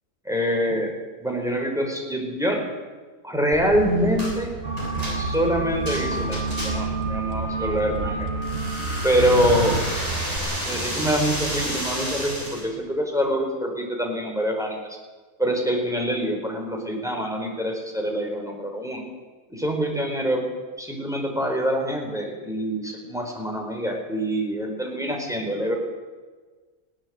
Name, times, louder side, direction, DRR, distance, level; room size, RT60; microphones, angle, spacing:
voice 1, 0.2-0.9 1.2-2.6 3.2-4.5 5.2-8.3 9.0-9.8 10.6-14.9 15.4-19.0 19.5-20.4 20.8-25.8, equal, ahead, 1 dB, 4.8 m, -25 dB
sound 1, 3.5-10.4, right 4 dB, 60° right, 2.4 m, -35 dB
sound 2, 4.2-4.4 4.8-7.0 8.4-12.7, equal, 25° right, 6.8 m, -31 dB
sound 3, 4.6-9.8, right 2 dB, 40° right, 2.9 m, -29 dB
20.0 x 17.5 x 8.0 m, 1.4 s
omnidirectional pair, 1.6 m